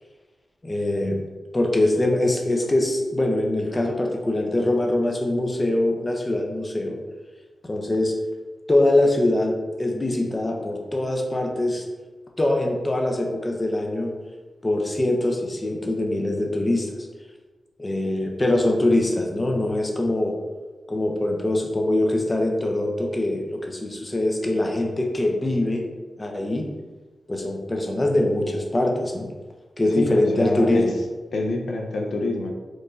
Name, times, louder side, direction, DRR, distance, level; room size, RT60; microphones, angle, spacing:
voice 1, 0.6-1.2 1.5-7.0 7.6-8.2 8.7-11.9 12.4-14.1 14.6-17.0 17.8-20.4 20.9-25.9 26.2-26.7 27.3-29.3 29.8-31.0, left 1 dB, 20° left, 1 dB, 0.5 m, -23 dB
voice 2, 30.0-30.9 31.3-32.5, left 2 dB, 75° left, 2 dB, 0.5 m, -26 dB
4.4 x 3.0 x 2.5 m, 1.3 s
wide cardioid pair, 115°, 0 cm